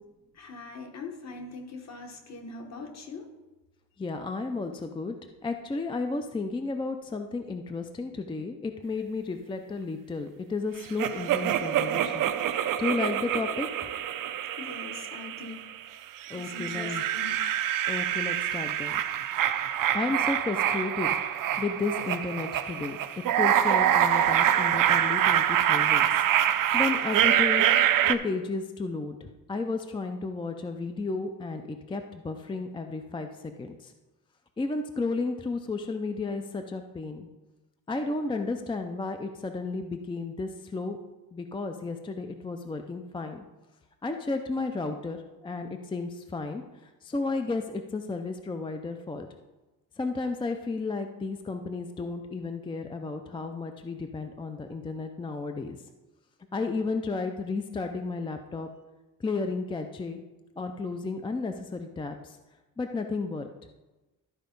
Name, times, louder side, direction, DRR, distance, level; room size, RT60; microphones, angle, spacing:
voice 1, 0.3-3.3 13.1-13.2 14.6-15.6 16.3-17.4, left 3 dB, 50° left, 4 dB, 1.3 m, -42 dB
voice 2, 4.0-5.1 5.4-13.8 16.3-17.0 17.9-19.0 19.9-23.0 23.4-26.2 26.5-27.6 28.1-33.3 33.6-33.9 34.6-37.3 37.9-41.0 41.3-43.4 44.0-46.6 47.0-49.3 50.0-55.8 56.5-58.7 59.2-60.2 60.6-62.4 62.8-63.5, left 3 dB, 15° left, 6 dB, 0.4 m, -33 dB
sound 1, 11.0-15.7 16.2-28.2, right 10 dB, 65° right, 0.6 m, -25 dB
12.5 x 4.7 x 5.2 m, 1.1 s
cardioid pair, 160°, 36 cm